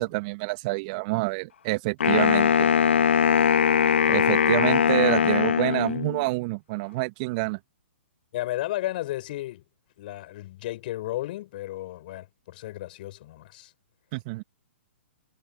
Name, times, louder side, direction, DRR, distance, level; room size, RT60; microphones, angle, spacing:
voice 1, 0.0-2.7 4.1-7.6 14.1-14.4, right 25 dB, 40° right, 2.1 m, -27 dB
Wind instrument woodwind instrument, 2.0-6.2, left 7 dB, 65° left, 1.9 m, -21 dB
voice 2, 8.3-9.6 10.0-13.7, left 15 dB, 45° left, 7.4 m, -33 dB
figure-of-eight pair, 120°, 7 cm